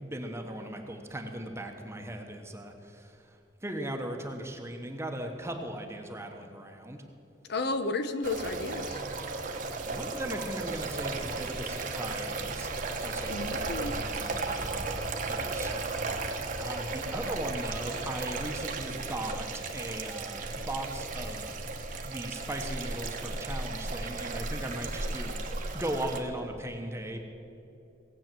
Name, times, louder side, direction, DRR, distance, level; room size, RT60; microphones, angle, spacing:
voice 1, 0.0-7.0 9.8-12.7 13.0-15.7 16.1-21.6 21.9-27.2, right 1 dB, 15° right, 3 dB, 1.0 m, -38 dB
voice 2, 7.5-9.0 13.3-14.0, left 3 dB, 65° left, 10 dB, 0.8 m, -32 dB
sound 1, 8.2-26.2, right 3 dB, 45° right, 1.2 m, -35 dB
17.5 x 8.1 x 7.5 m, 2.7 s
head